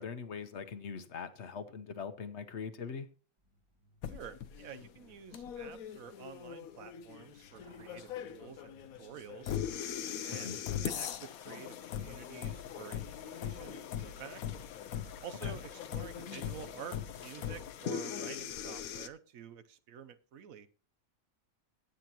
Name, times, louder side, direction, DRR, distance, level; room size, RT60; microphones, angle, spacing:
voice 1, 0.0-3.1 10.3-10.6 15.4-15.6, left 6 dB, 55° left, 1.2 m, -42 dB
Truck, 3.4-11.0, equal, 20° right, 1.6 m, -65 dB
sound 1, 4.0-19.1, left 9 dB, 90° left, 1.2 m, -40 dB
voice 2, 4.1-9.5 10.2-14.4 15.2-20.7, right 8 dB, 75° right, 1.2 m, -49 dB
17.0 x 8.1 x 2.9 m
omnidirectional pair, 1.5 m